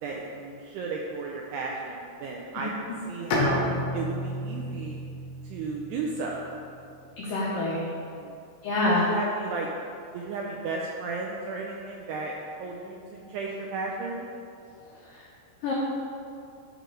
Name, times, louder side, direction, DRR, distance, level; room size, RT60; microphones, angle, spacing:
voice 1, 0.0-2.7 3.1-3.7 3.9-5.0 5.4-6.5 8.0-8.3 8.9-9.7 10.1-12.3 12.6-14.3, right 3 dB, 85° right, -1 dB, 2.3 m, -34 dB
Bowed string instrument, 3.3-6.9, left 1 dB, 70° left, 2.4 m, -31 dB
voice 2, 7.2-7.8 8.6-9.1 15.6-15.7, left 2 dB, 90° left, -5 dB, 1.9 m, -26 dB
13.0 x 5.0 x 3.8 m, 2.5 s
omnidirectional pair, 5.4 m